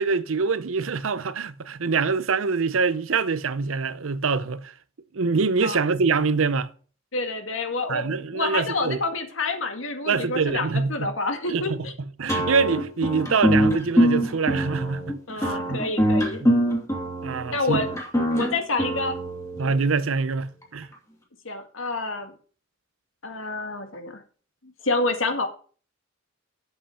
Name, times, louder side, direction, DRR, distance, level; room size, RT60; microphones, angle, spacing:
voice 1, 0.0-4.7 5.1-6.7 7.9-9.0 10.1-11.1 11.5-11.8 12.2-15.8 16.4-16.5 17.2-17.8 19.6-20.9, right 4 dB, 80° right, 0.7 m, -25 dB
voice 2, 7.1-11.9 15.3-16.4 17.5-17.9 18.4-19.2 21.4-22.3 23.2-24.2 24.6-25.5, left 3 dB, 70° left, 1.9 m, -28 dB
sound 1, 12.3-19.7, equal, 15° left, 2.6 m, -23 dB
8.5 x 7.7 x 5.7 m
head